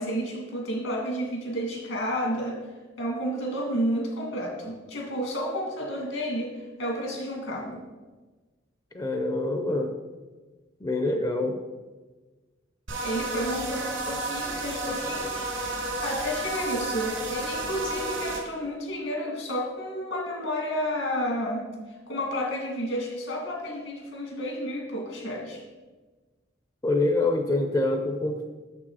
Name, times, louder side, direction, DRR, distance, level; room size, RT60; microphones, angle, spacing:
voice 1, 0.0-2.6 3.0-6.5 6.8-7.8 13.0-15.6 16.0-21.6 22.1-25.6, equal, 80° left, 0 dB, 2.3 m, -31 dB
voice 2, 8.9-9.9 10.8-11.6 26.8-28.5, left 2 dB, 20° left, 4 dB, 0.5 m, -25 dB
sound 1, 12.9-18.4, right 2 dB, 80° right, 2.1 m, -32 dB
6.9 x 6.1 x 4.8 m, 1.3 s
head